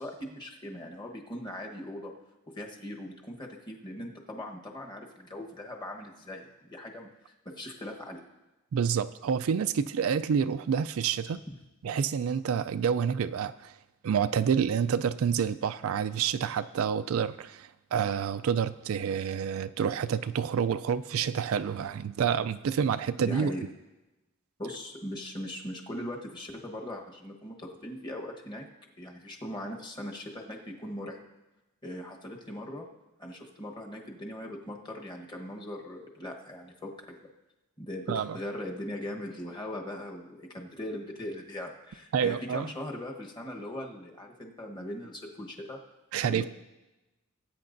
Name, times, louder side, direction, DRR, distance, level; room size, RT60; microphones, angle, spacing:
voice 1, 0.0-2.1 2.5-8.2 23.2-23.6 24.6-28.7 29.0-31.2 31.8-32.9 33.2-37.2 37.8-45.8 46.3-46.5, left 1 dB, 20° left, 1 dB, 1.2 m, -40 dB
voice 2, 8.7-11.4 11.8-13.7 14.0-23.5 38.1-38.4 42.1-42.7 46.1-46.4, right 7 dB, 75° right, 13 dB, 0.4 m, -28 dB
19.0 x 8.9 x 2.6 m, 1.0 s
head